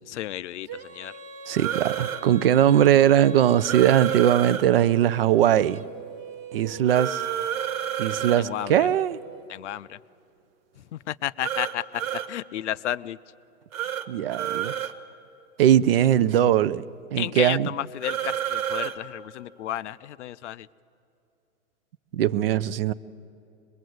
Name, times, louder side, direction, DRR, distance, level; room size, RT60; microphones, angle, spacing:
voice 1, 0.1-1.1 8.4-8.9 9.5-10.0 10.9-13.2 17.2-20.7, left 12 dB, 55° left, 0.6 m, -32 dB
Female singing, 0.7-9.5, right 3 dB, 20° right, 1.0 m, -42 dB
voice 2, 1.5-5.8 6.5-7.2 8.0-9.2 14.1-14.7 15.6-16.8 17.1-17.7 22.1-22.9, right 11 dB, 45° right, 0.5 m, -20 dB
sound 1, 1.6-2.2 3.6-4.6 6.9-8.4 11.4-12.3 13.7-14.0 14.3-14.9 18.0-18.9, right 10 dB, 70° right, 1.5 m, -29 dB
24.0 x 21.0 x 7.8 m
hypercardioid pair, 140°, 43 cm